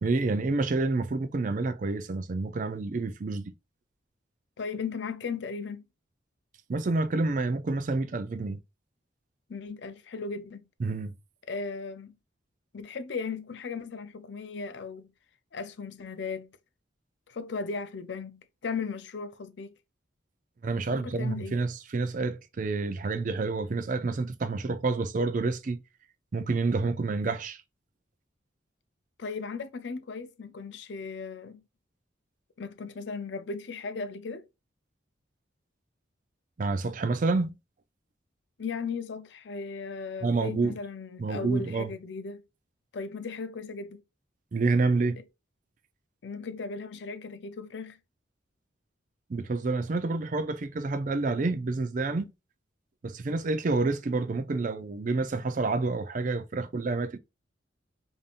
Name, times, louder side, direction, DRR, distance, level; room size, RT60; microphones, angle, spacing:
voice 1, 0.0-3.5 6.7-8.6 10.8-11.1 20.6-25.8 26.3-27.6 36.6-37.6 40.2-40.7 41.2-41.9 44.5-45.2 49.3-52.3 53.0-57.2, right 3 dB, 40° right, 0.4 m, -28 dB
voice 2, 4.6-5.8 9.5-10.7 11.5-12.1 12.7-15.1 15.5-16.5 17.3-19.7 20.7-21.6 29.2-31.6 32.6-34.5 38.6-42.5 42.9-44.0 45.1-45.2 46.2-48.0, left 4 dB, 65° left, 0.5 m, -37 dB
5.1 x 2.6 x 2.5 m
head